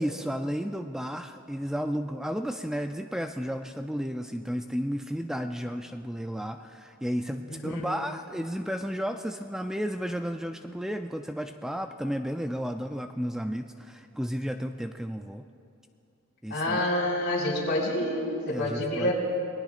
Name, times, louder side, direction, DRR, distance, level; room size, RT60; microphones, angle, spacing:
voice 1, 0.0-15.4 16.4-16.8 18.5-19.1, equal, 5° right, 5 dB, 0.3 m, -33 dB
voice 2, 7.5-7.9 16.5-19.1, left 1 dB, 55° left, -7 dB, 4.1 m, -28 dB
27.0 x 20.0 x 2.5 m, 2.6 s
head